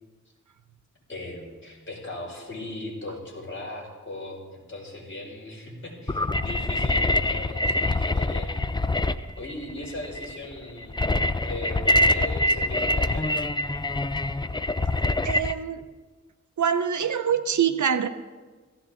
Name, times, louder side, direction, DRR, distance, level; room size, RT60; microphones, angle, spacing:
voice 1, 1.1-8.6 9.4-11.1 11.4-13.4, left 2 dB, 40° left, -4 dB, 6.0 m, -38 dB
sound 1, 6.1-15.5, left 1 dB, 15° left, 0.5 m, -25 dB
voice 2, 15.2-15.8 16.6-18.1, right 8 dB, 75° right, 10 dB, 0.9 m, -24 dB
17.5 x 16.0 x 3.9 m, 1.4 s
wide cardioid pair, 110°, 30 cm